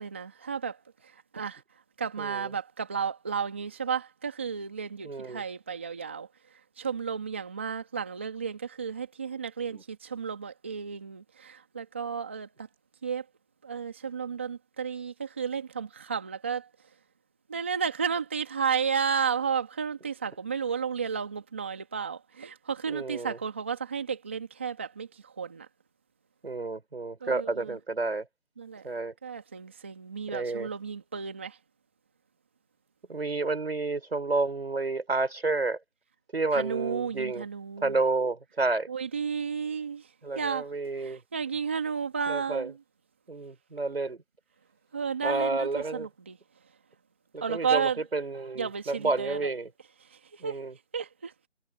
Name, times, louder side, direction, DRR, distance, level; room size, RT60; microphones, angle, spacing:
voice 1, 0.0-1.6 2.0-6.3 6.8-12.7 13.0-13.2 13.6-16.7 17.5-25.7 27.2-27.8 28.6-28.9 29.2-31.6 36.5-38.0 38.9-40.7 40.9-42.7 44.9-46.4 47.4-48.0 48.6-49.5 50.0-50.6 50.9-51.5, right 6 dB, 10° right, 1.7 m, -33 dB
voice 2, 2.2-2.5 5.0-5.4 9.7-9.8 22.9-23.4 26.4-28.3 28.8-29.1 30.3-30.7 33.1-35.8 36.3-37.4 37.8-38.9 40.2-41.2 42.3-42.7 43.3-44.2 45.2-46.1 47.3-49.7 50.4-50.7, right 3 dB, 60° right, 5.5 m, -30 dB
figure-of-eight pair, 175°, 36 cm